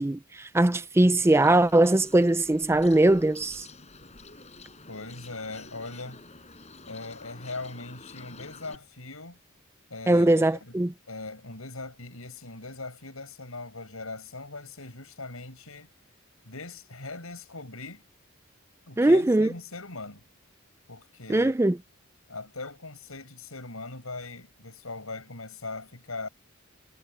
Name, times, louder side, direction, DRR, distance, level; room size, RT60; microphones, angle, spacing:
voice 1, 0.0-3.7 10.1-10.9 19.0-19.5 21.3-21.8, right 1 dB, 10° right, 0.4 m, -21 dB
Bird, 1.2-8.7, left 3 dB, 30° left, 5.8 m, -49 dB
voice 2, 4.9-6.2 6.8-9.4 9.9-10.8 11.1-15.9 16.4-18.1 18.9-20.2 20.9-21.5 22.3-26.3, left 3 dB, 85° left, 6.6 m, -40 dB
head